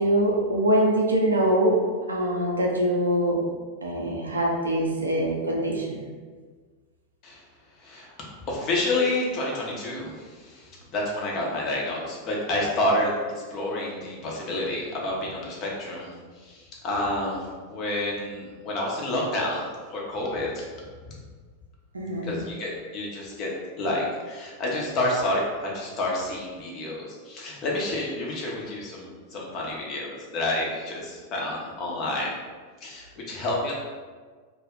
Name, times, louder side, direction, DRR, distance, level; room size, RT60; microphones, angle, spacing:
voice 1, 0.0-1.8 2.1-3.4 3.8-6.0 21.9-22.3, right 1 dB, 75° right, -1 dB, 0.5 m, -23 dB
voice 2, 7.8-8.1 8.5-20.7 22.2-23.5 23.8-32.4 32.8-33.7, left 1 dB, 35° left, -3 dB, 0.7 m, -29 dB
2.3 x 2.1 x 3.6 m, 1.5 s
figure-of-eight pair, 90°, 0 cm